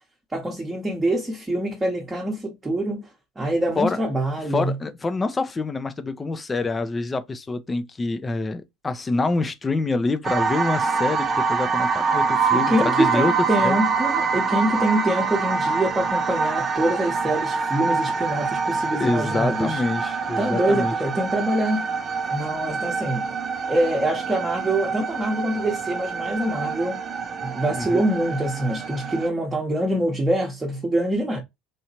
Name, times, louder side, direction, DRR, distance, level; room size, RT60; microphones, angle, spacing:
voice 1, 0.3-3.1 3.4-4.8 12.5-19.8 20.4-21.9 22.3-23.3 23.7-27.0 27.4-31.4, right 1 dB, 15° right, 1.0 m, -25 dB
voice 2, 4.5-13.3 13.6-13.7 19.0-20.9 27.8-28.0, left 3 dB, 20° left, 0.6 m, -26 dB
sound 1, 10.2-29.3, right 5 dB, 35° right, 0.5 m, -25 dB
3.3 x 2.7 x 2.8 m
figure-of-eight pair, 70°, 0 cm